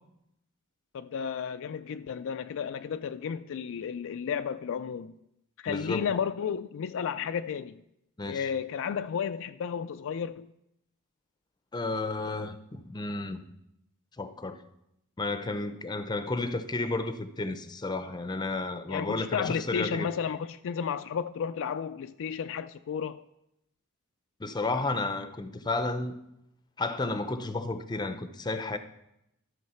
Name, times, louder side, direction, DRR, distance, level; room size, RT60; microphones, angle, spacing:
voice 1, 0.9-5.1 5.6-7.8 8.3-10.5 18.9-23.2, left 7 dB, 60° left, 0.4 m, -33 dB
voice 2, 5.7-6.1 8.2-8.5 11.7-13.4 14.2-14.6 15.2-20.1 24.4-26.1 26.8-28.8, left 2 dB, 20° left, 0.6 m, -32 dB
12.5 x 6.5 x 5.7 m
head